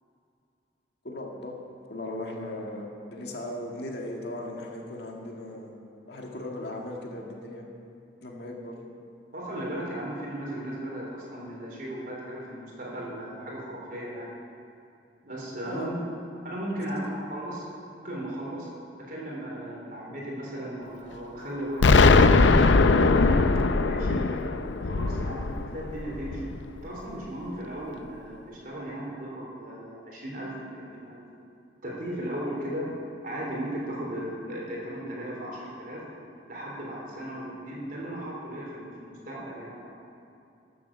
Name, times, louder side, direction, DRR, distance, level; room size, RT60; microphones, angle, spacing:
voice 1, 1.0-1.5 1.9-5.7 6.1-7.7 8.2-8.8 15.7-16.0, left 1 dB, 65° left, 0 dB, 1.8 m, -37 dB
voice 2, 9.3-14.3 15.2-15.9 16.4-17.7 17.9-18.7 19.0-22.7 23.1-24.4 24.8-26.4 26.8-31.2 31.8-32.9 33.2-36.0 36.5-39.9, right 1 dB, 50° right, -3 dB, 3.5 m, -36 dB
Explosion, 21.8-26.7, left 3 dB, 90° left, 0.5 m, -20 dB
13.0 x 7.7 x 7.1 m, 2.6 s
head